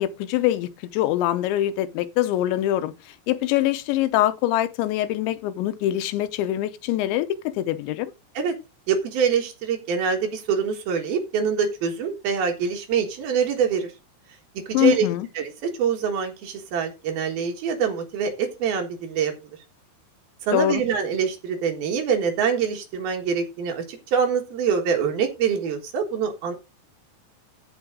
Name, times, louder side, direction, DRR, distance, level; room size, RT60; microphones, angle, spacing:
voice 1, 0.0-2.9 3.3-8.1 14.7-15.3 20.5-20.8, left 13 dB, 90° left, 3.1 m, -24 dB
voice 2, 8.9-13.9 14.7-15.1 15.4-19.3 20.4-26.5, right 6 dB, 65° right, 3.3 m, -25 dB
15.0 x 5.6 x 3.7 m
omnidirectional pair, 5.1 m